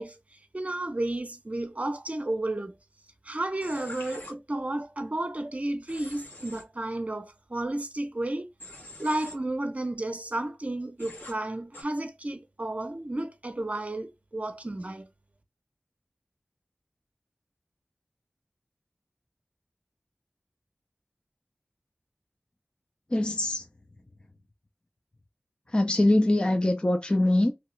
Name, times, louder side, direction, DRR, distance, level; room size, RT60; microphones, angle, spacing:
voice 1, 0.0-2.7 3.2-8.4 9.0-15.1, right 1 dB, 40° right, 0.6 m, -32 dB
Human voice / Train, 3.6-4.3 5.9-6.6 8.6-9.3 11.0-11.3 11.7-11.8, left 1 dB, 80° left, 1.3 m, -44 dB
voice 2, 23.1-23.6 25.7-27.5, left 1 dB, 25° left, 0.5 m, -23 dB
2.8 x 2.4 x 3.1 m
wide cardioid pair, 45°, 4 cm